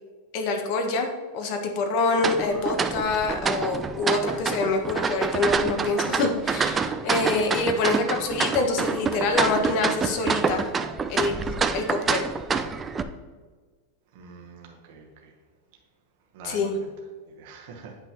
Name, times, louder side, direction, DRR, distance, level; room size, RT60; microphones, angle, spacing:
voice 1, 0.3-1.1 1.3-10.7 11.1-12.3 16.4-16.8, left 3 dB, 45° left, 5 dB, 1.1 m, -26 dB
sound 1, 2.2-13.0, right 5 dB, 15° right, 0.3 m, -27 dB
voice 2, 14.1-15.3 16.3-16.9 17.3-18.0, right 4 dB, 55° right, 0 dB, 1.2 m, -45 dB
8.9 x 5.7 x 3.0 m, 1.4 s
supercardioid pair, 160°, 0 cm